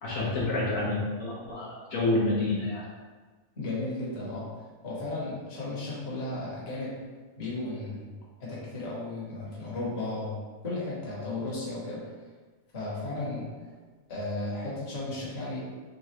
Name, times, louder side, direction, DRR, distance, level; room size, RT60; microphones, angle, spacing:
voice 1, 0.0-2.8, left 2 dB, 75° left, -6 dB, 1.3 m, -28 dB
voice 2, 3.5-7.0 7.4-8.1 8.4-12.1 12.7-13.7 14.1-15.7, left 2 dB, 50° left, -6 dB, 1.4 m, -35 dB
3.8 x 3.5 x 3.1 m, 1.4 s
omnidirectional pair, 1.5 m